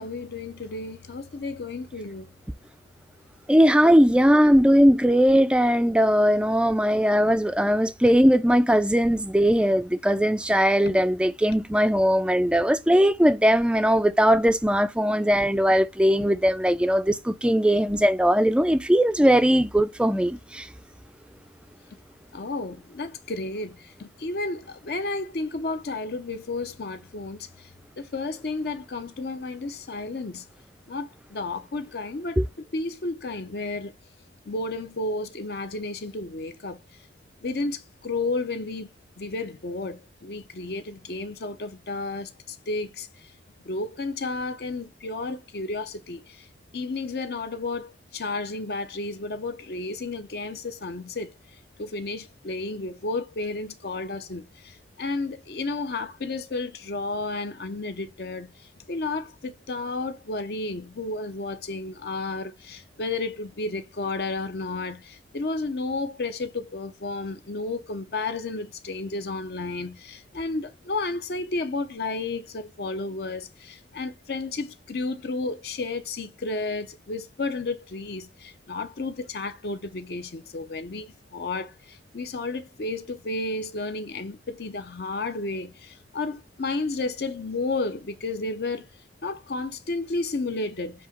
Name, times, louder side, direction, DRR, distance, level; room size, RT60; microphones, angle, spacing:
voice 1, 0.0-2.3 22.3-23.7 24.0-27.4 28.1-30.4 30.9-32.4 32.7-33.9 34.5-36.8 37.4-37.8 38.0-38.9 39.2-42.3 42.7-43.1 43.7-46.2 46.7-51.3 51.8-54.4 55.0-58.5 58.9-65.0 65.3-81.7 82.1-85.7 86.1-88.8 89.2-90.9, left 3 dB, 55° left, 0.6 m, -32 dB
voice 2, 3.5-20.7 32.4-32.5, equal, 5° right, 0.3 m, -20 dB
7.8 x 2.8 x 5.1 m
head